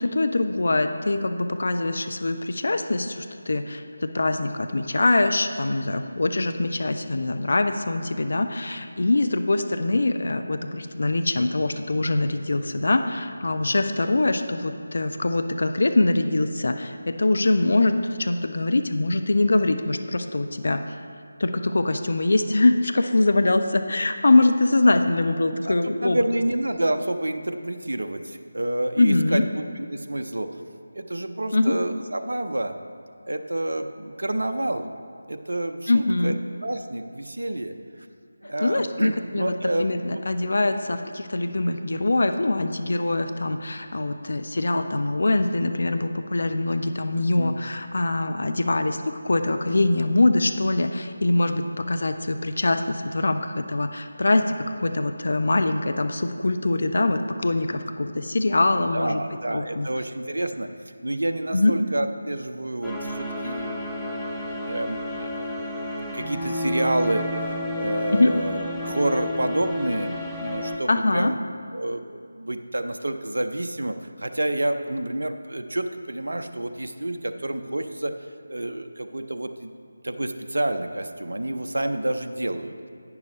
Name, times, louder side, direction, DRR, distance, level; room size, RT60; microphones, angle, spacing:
voice 1, 0.0-20.8 21.4-26.2 29.0-29.4 31.5-31.8 35.9-36.4 38.4-59.2 59.5-59.9 61.5-61.7 68.1-68.3 70.9-71.3, left 2 dB, 55° left, 7 dB, 0.5 m, -23 dB
voice 2, 25.6-30.5 30.9-32.7 33.3-34.8 35.3-36.3 36.6-37.8 38.4-39.9 40.1-40.6 47.4-47.6 58.9-60.7 61.0-65.6 66.1-71.4 71.7-78.1 78.5-79.7 80.0-82.9, right 1 dB, 65° right, 7 dB, 0.7 m, -29 dB
sound 1, 62.8-70.8, left 1 dB, ahead, 0.6 m, -31 dB
10.5 x 9.7 x 3.2 m, 2.3 s
figure-of-eight pair, 160°, 0 cm